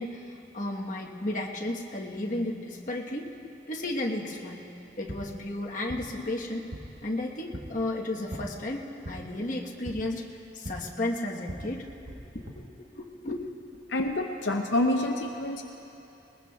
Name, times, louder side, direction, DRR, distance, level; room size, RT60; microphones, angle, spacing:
voice 1, 0.0-3.3 3.7-4.6 5.0-6.7 7.0-10.2 10.5-13.4, left 1 dB, 45° left, -1 dB, 1.2 m, -33 dB
sound 1, 4.8-12.5, equal, 65° right, 1.3 m, -43 dB
voice 2, 13.9-15.6, left 1 dB, 80° left, 3 dB, 0.6 m, -27 dB
21.0 x 20.0 x 2.3 m, 2.9 s
head